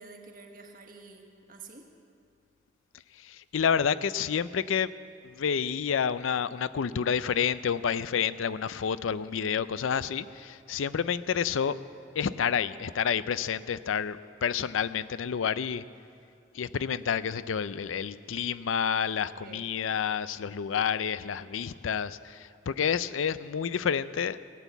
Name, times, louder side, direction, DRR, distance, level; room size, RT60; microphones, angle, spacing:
voice 1, 0.0-1.9 19.4-19.6, right 3 dB, 45° right, 3 dB, 1.4 m, -48 dB
voice 2, 3.1-4.9 5.2-11.8 12.2-15.8 16.5-24.4, left 7 dB, 90° left, 15 dB, 0.4 m, -29 dB
17.0 x 9.1 x 8.2 m, 2.4 s
head